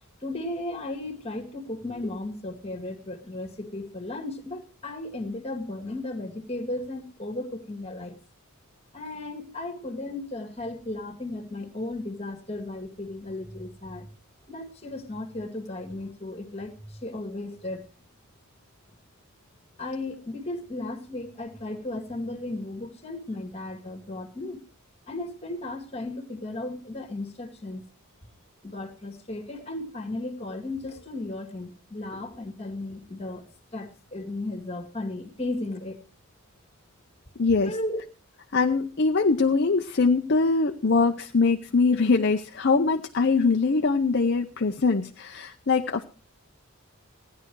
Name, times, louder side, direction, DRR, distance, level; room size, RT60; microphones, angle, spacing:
voice 1, 0.2-8.2 8.9-14.1 14.5-17.8 19.8-24.6 25.1-27.8 28.6-33.5 33.7-36.0 37.6-38.0, left 2 dB, 25° left, 5 dB, 1.9 m, -35 dB
voice 2, 37.4-37.8 38.5-46.0, left 4 dB, 50° left, 5 dB, 0.6 m, -22 dB
16.5 x 10.0 x 4.6 m, 0.38 s
head